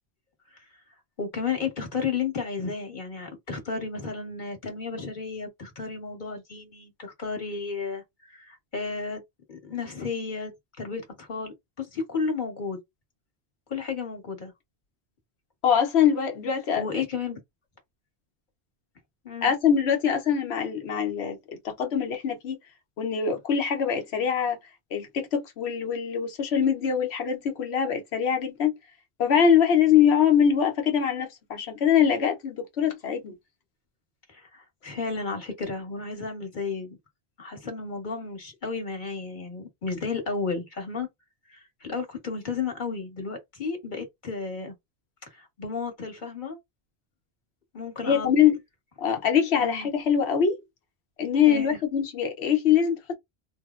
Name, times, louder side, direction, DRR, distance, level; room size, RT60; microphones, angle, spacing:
voice 1, 1.2-9.2 9.5-10.5 10.8-12.8 13.7-14.5 16.8-17.4 19.2-19.5 34.3-37.0 37.4-41.1 41.5-44.7 45.3-46.6 47.7-48.4 49.6-49.9 51.5-51.8, left 5 dB, 50° left, 1.3 m, -33 dB
voice 2, 15.6-17.0 19.4-22.6 23.0-24.6 24.9-28.7 29.2-33.4 48.0-48.6 49.0-50.6 51.2-53.1, left 8 dB, 80° left, 1.1 m, -23 dB
3.4 x 2.0 x 2.4 m
omnidirectional pair, 1.1 m